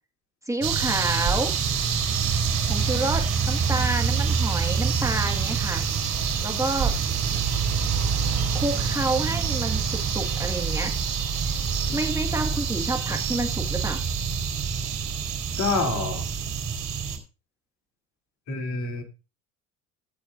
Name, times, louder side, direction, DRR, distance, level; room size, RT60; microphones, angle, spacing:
voice 1, 0.5-1.5 2.7-5.8 6.4-6.9 8.5-10.9 11.5-11.6 11.9-14.0, right 2 dB, 10° right, 3 dB, 1.7 m, -29 dB
sound 1, 0.6-17.2, right 6 dB, 45° right, 4.0 m, -26 dB
voice 2, 6.5-6.9 15.6-16.2 18.5-19.0, left 3 dB, 50° left, 3 dB, 3.0 m, -28 dB
16.5 x 9.0 x 2.5 m, 0.30 s
supercardioid pair, 95°, 37 cm